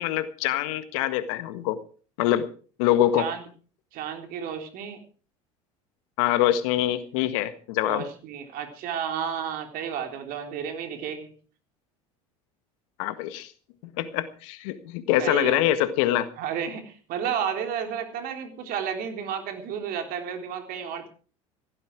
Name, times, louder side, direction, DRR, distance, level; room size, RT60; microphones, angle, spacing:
voice 1, 0.0-1.8 2.2-2.5 2.8-3.3 6.2-8.1 13.0-13.5 14.0-16.3, left 13 dB, 70° left, 12 dB, 1.7 m, -24 dB
voice 2, 3.9-5.0 7.8-11.3 15.2-15.6 16.4-21.1, right 8 dB, 55° right, 5 dB, 3.8 m, -32 dB
16.5 x 14.0 x 4.8 m, 0.40 s
hypercardioid pair, 75°, 18 cm